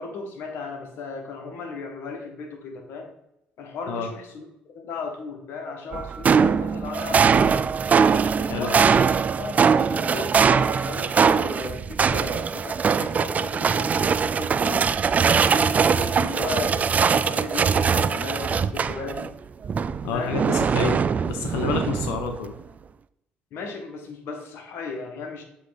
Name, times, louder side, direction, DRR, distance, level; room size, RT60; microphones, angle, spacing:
voice 1, 0.0-3.1 3.6-4.5 4.7-7.5 8.4-9.1 9.4-9.6 9.9-15.0 15.5-19.4 20.1-20.4 23.5-25.4, left 4 dB, 70° left, 3 dB, 1.4 m, -36 dB
sound 1, 5.9-19.3 19.6-22.4, right 6 dB, 40° right, 0.3 m, -22 dB
voice 2, 20.0-21.0 21.3-22.5, left 5 dB, 85° left, 5 dB, 0.7 m, -28 dB
7.4 x 3.4 x 4.0 m, 0.86 s
supercardioid pair, 70°, 4 cm